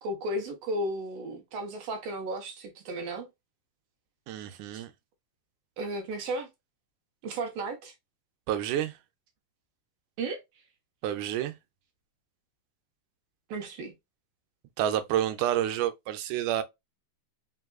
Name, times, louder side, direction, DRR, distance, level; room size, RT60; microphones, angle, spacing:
voice 1, 0.0-3.3 4.7-4.8 5.8-6.5 7.2-7.9 10.2-10.4 13.5-13.9, right 1 dB, 65° right, 1.7 m, -34 dB
voice 2, 4.3-4.9 8.5-9.0 11.0-11.6 14.8-16.6, right 11 dB, 90° right, 2.1 m, -29 dB
4.6 x 3.5 x 2.3 m
omnidirectional pair, 3.5 m